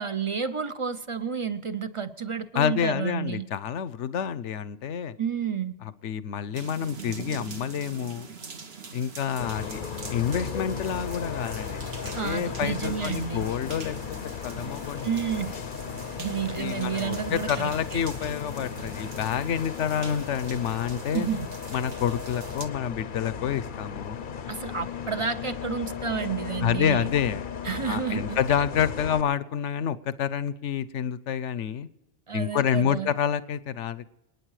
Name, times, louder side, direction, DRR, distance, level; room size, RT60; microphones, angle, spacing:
voice 1, 0.0-3.5 5.2-5.8 12.1-13.5 15.0-15.5 16.2-18.0 21.1-21.5 24.5-27.1 27.6-28.4 32.3-33.1, right 7 dB, 30° right, 11 dB, 0.7 m, -30 dB
voice 2, 2.5-5.1 5.8-8.3 8.9-9.8 10.1-14.0 14.2-15.1 16.6-21.3 21.7-24.2 26.6-27.5 27.8-31.9 32.3-34.0, left 8 dB, 80° left, 15 dB, 1.1 m, -28 dB
sound 1, 6.5-22.7, right 5 dB, 60° right, 1.5 m, -43 dB
Bus, 9.4-29.2, left 7 dB, 50° left, 0.8 m, -36 dB
27.5 x 9.6 x 4.8 m, 1.0 s
omnidirectional pair, 1.2 m